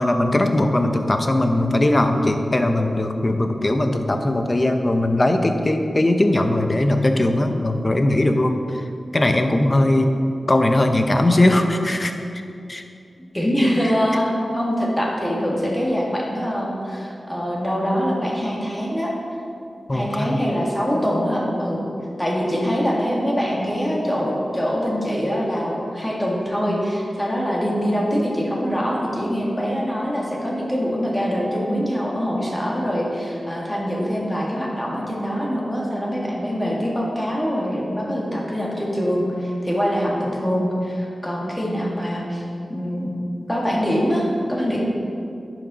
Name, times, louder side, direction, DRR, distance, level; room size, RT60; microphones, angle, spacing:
voice 1, 0.0-8.9 9.1-10.1 10.5-12.1 12.7-12.8 13.8-13.9 19.9-20.3, left 1 dB, 30° left, 6 dB, 0.7 m, -19 dB
voice 2, 13.3-19.1 19.9-21.8 22.2-42.4 42.7-43.1 43.5-44.8, equal, 15° left, -3 dB, 1.8 m, -24 dB
10.5 x 6.1 x 4.1 m, 2.6 s
wide cardioid pair, 90°, 0 cm